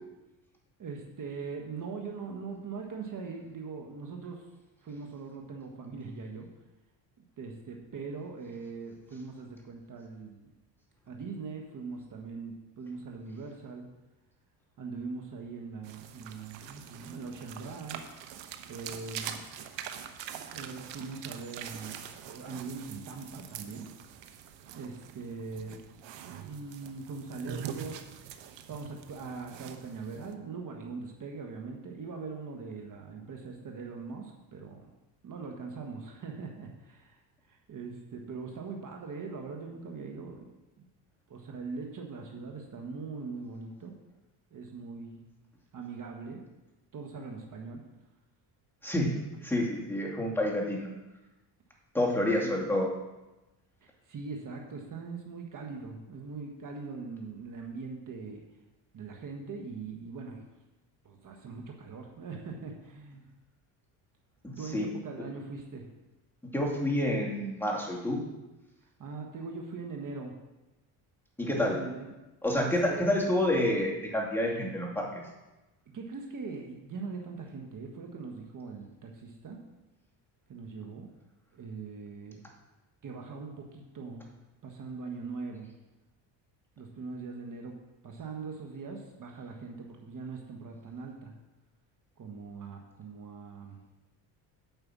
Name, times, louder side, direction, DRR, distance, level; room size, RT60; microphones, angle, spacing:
voice 1, 0.8-4.4 4.8-6.5 7.4-10.5 11.1-13.9 14.8-18.0 18.7-19.4 20.5-23.9 24.7-25.8 26.4-28.0 28.7-34.9 35.2-37.2 37.5-40.5 40.8-40.9 41.3-43.9 44.5-45.2 45.7-46.4 46.9-47.8 52.4-52.5 53.8-58.4 58.9-60.4 61.0-63.3 64.6-65.8 69.0-70.3 71.5-72.1 72.6-73.1 75.9-79.6 80.5-81.1 81.5-82.4 83.0-84.3 84.6-85.7 86.8-87.7 88.0-91.3 92.2-93.8, right 4 dB, 45° right, 2 dB, 1.5 m, -41 dB
sound 1, 15.8-30.3, right 9 dB, 70° right, 1.1 m, -44 dB
voice 2, 48.8-50.9 51.9-52.9 64.7-64.9 66.5-68.2 71.4-71.8 72.4-75.2, left 1 dB, 5° left, -3 dB, 2.5 m, -28 dB
9.3 x 5.5 x 7.4 m, 1.0 s
cardioid pair, 105°, 45 cm